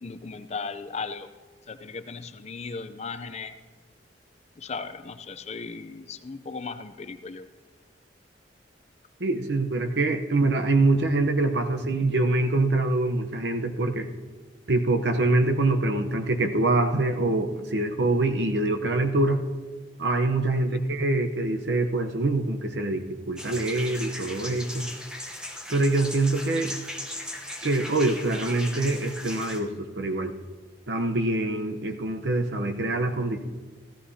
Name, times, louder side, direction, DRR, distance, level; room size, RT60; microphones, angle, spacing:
voice 1, 0.0-1.3 1.7-3.5 4.6-7.5 20.7-20.8, left 4 dB, 35° left, 10 dB, 0.5 m, -37 dB
voice 2, 9.2-14.1 14.7-19.4 20.0-24.8 25.7-26.8 27.6-30.3 30.9-33.4, right 2 dB, 65° right, 6 dB, 0.9 m, -24 dB
sound 1, 23.4-29.6, left 1 dB, 5° right, 0.9 m, -38 dB
15.5 x 14.0 x 2.8 m, 1.4 s
head